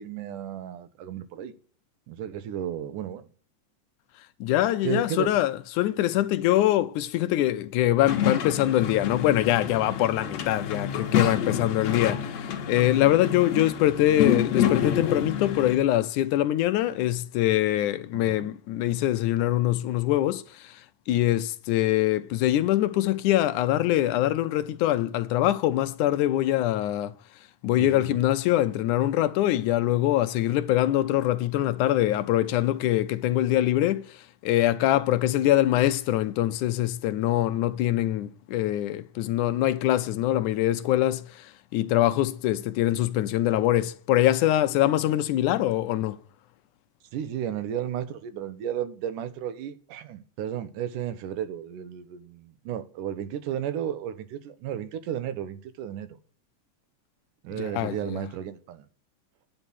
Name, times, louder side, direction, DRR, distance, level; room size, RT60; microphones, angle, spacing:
voice 1, 0.0-1.5 2.1-3.3 4.8-5.3 18.1-18.5 27.8-28.2 47.1-56.2 57.4-58.9, right 10 dB, 80° right, 2.6 m, -33 dB
voice 2, 4.4-27.1 27.6-46.2 57.6-58.2, left 14 dB, 75° left, 2.1 m, -24 dB
sound 1, 8.1-15.8, left 9 dB, 60° left, 2.3 m, -28 dB
10.0 x 7.8 x 6.1 m
omnidirectional pair, 3.7 m